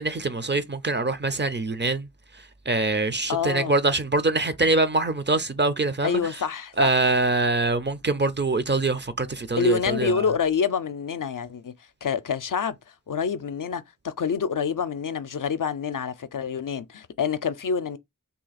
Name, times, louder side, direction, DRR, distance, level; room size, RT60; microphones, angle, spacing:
voice 1, 0.0-2.1 2.7-6.2 6.8-10.3, right 2 dB, 35° right, 0.5 m, -24 dB
voice 2, 3.3-3.7 6.0-7.0 9.6-11.7 12.0-12.8 13.1-18.0, left 6 dB, 70° left, 0.5 m, -27 dB
2.8 x 2.8 x 4.0 m
wide cardioid pair, 45°, 33 cm